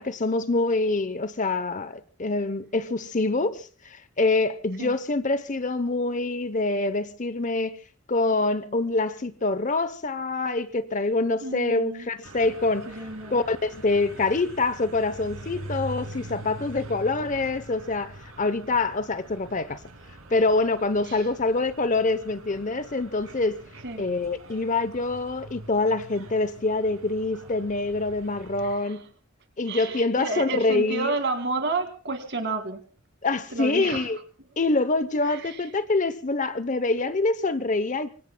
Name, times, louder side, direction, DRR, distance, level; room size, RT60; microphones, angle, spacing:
voice 1, 0.0-7.8 8.1-12.9 13.3-19.8 20.3-23.6 24.0-29.0 29.6-31.1 33.2-34.2 34.6-38.1, left 3 dB, 35° left, 0.8 m, -25 dB
voice 2, 11.4-12.1 12.9-13.4 21.1-21.2 23.8-24.0 28.6-29.0 29.7-32.8 33.5-34.1 35.3-35.6, right 3 dB, 55° right, 2.2 m, -31 dB
sound 1, 12.2-28.7, right 1 dB, 75° right, 7.2 m, -43 dB
25.5 x 24.0 x 2.3 m
head